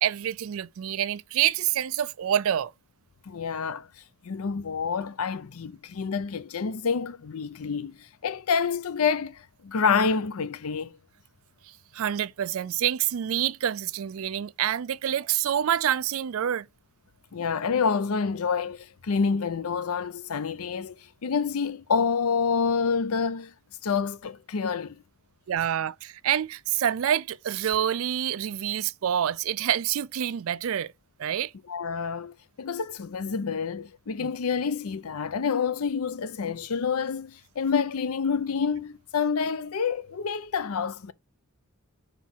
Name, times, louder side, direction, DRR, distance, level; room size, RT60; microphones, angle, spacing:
voice 1, 0.0-2.7 11.7-16.7 25.5-30.9 31.2-31.5 34.2-34.3, right 10 dB, 65° right, 0.4 m, -27 dB
voice 2, 3.3-3.9 4.2-11.0 17.3-21.0 21.2-23.5 23.8-25.0 31.7-41.1, left 5 dB, 75° left, 0.5 m, -28 dB
4.5 x 4.5 x 5.5 m
head